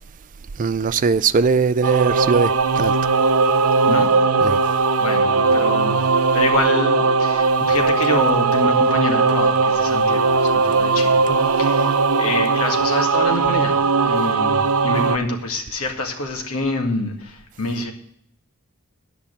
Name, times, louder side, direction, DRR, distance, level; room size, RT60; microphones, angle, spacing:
voice 1, 0.6-2.9 4.4-4.6, right 5 dB, 35° right, 0.4 m, -19 dB
Singing / Musical instrument, 1.8-15.2, right 4 dB, 75° right, 0.6 m, -18 dB
voice 2, 3.9-4.2 4.6-17.9, left 2 dB, 75° left, 2.2 m, -26 dB
11.0 x 5.8 x 8.3 m
head